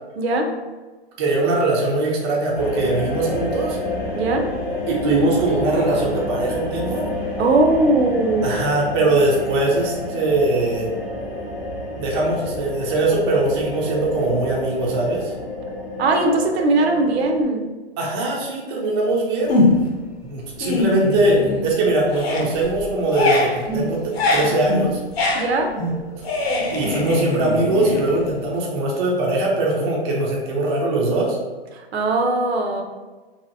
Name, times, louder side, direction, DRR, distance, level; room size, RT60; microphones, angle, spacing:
voice 1, 0.2-0.5 4.1-4.5 7.4-8.6 16.0-17.7 25.3-25.7 31.7-32.8, right 2 dB, 75° right, 3 dB, 0.6 m, -19 dB
voice 2, 1.2-3.8 4.9-7.1 8.4-10.9 11.9-15.3 18.0-19.5 20.2-25.0 26.7-31.4, right 2 dB, 25° right, -2 dB, 0.4 m, -21 dB
sound 1, 2.5-17.4, left 2 dB, 25° left, 0.8 m, -29 dB
sound 2, 19.5-20.0 20.4-21.8 22.1-28.6, left 2 dB, 70° left, 0.8 m, -22 dB
2.8 x 2.7 x 2.6 m, 1.3 s
hypercardioid pair, 145°, 32 cm